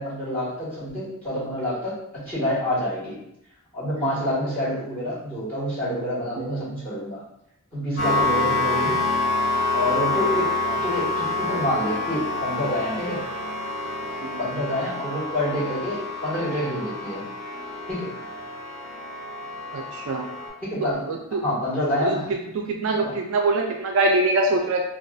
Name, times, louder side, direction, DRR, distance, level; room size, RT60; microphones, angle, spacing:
voice 1, 0.0-3.2 3.7-7.2 7.7-9.0 9.7-13.2 14.4-17.2 17.9-18.1 20.7-22.3 23.0-23.2, equal, 5° left, -12 dB, 1.3 m, -27 dB
voice 2, 6.4-6.7 14.2-14.4 19.7-20.2 21.1-21.4 22.0-22.2 22.5-24.8, right 2 dB, 60° right, 1 dB, 0.3 m, -24 dB
sound 1, 8.0-20.5, left 3 dB, 75° left, 1.2 m, -27 dB
2.5 x 2.3 x 2.2 m, 0.79 s
head